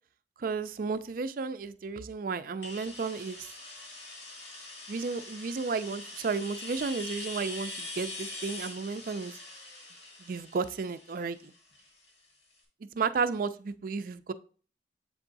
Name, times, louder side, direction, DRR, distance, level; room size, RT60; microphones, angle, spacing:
voice 1, 0.4-3.5 4.9-9.3 10.2-11.5 12.9-14.3, right 4 dB, 50° right, 12 dB, 0.4 m, -33 dB
sound 1, 2.6-12.2, left 2 dB, 85° left, 1.7 m, -43 dB
7.5 x 3.5 x 3.9 m, 0.41 s
head